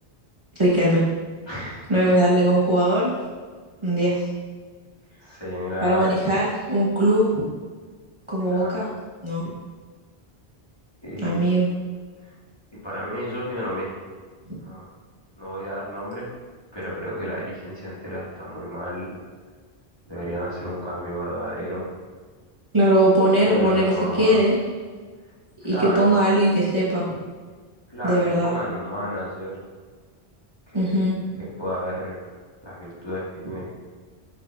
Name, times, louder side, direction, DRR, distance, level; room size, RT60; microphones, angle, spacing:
voice 1, 0.6-1.0 1.9-3.1 3.8-4.2 5.8-7.4 8.3-8.9 9.2-9.5 11.2-11.7 22.7-24.5 25.6-27.1 28.0-28.6 30.7-31.2, right 1 dB, 30° right, -8 dB, 1.4 m, -20 dB
voice 2, 1.5-2.2 5.2-6.1 8.5-8.8 11.0-11.5 12.7-14.1 14.6-14.9 15.4-16.3 16.7-19.1 20.1-21.9 23.4-24.4 25.6-26.1 27.9-29.5 30.7-31.1 31.4-32.3 32.6-33.7, equal, 25° left, -8 dB, 2.0 m, -32 dB
9.0 x 5.7 x 2.6 m, 1.5 s
omnidirectional pair, 1.1 m